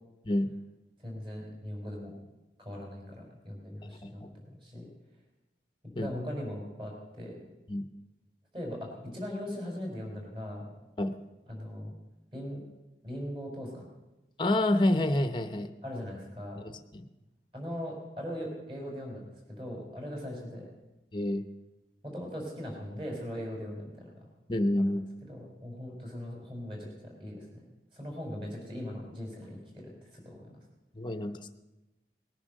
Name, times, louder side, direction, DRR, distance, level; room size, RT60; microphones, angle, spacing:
voice 1, 1.0-2.1 2.6-4.2 4.6-4.9 6.0-7.4 8.5-10.7 11.5-11.9 12.3-12.6 13.0-13.9 15.8-16.6 17.5-19.2 19.5-20.7 22.0-24.1 24.8-24.9 25.3-27.4 27.9-30.4, equal, 30° right, 0 dB, 5.2 m, -39 dB
voice 2, 14.4-15.7 16.6-17.0 21.1-21.4 24.5-25.0 30.9-31.5, left 1 dB, 25° left, 8 dB, 0.9 m, -28 dB
19.5 x 10.0 x 6.5 m, 1.0 s
head